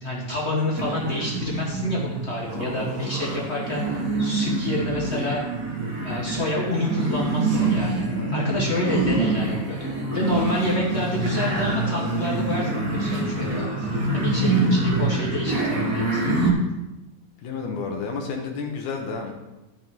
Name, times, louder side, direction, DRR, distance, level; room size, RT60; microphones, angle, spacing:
voice 1, 0.0-5.4 6.0-7.9 8.3-16.2, left 1 dB, 55° left, -4 dB, 0.7 m, -28 dB
sound 1, 0.8-16.5, right 2 dB, 40° right, 1.4 m, -25 dB
voice 2, 8.0-8.3 17.4-19.3, left 4 dB, 80° left, 1 dB, 2.6 m, -31 dB
14.0 x 5.6 x 3.8 m, 1.0 s
omnidirectional pair, 3.6 m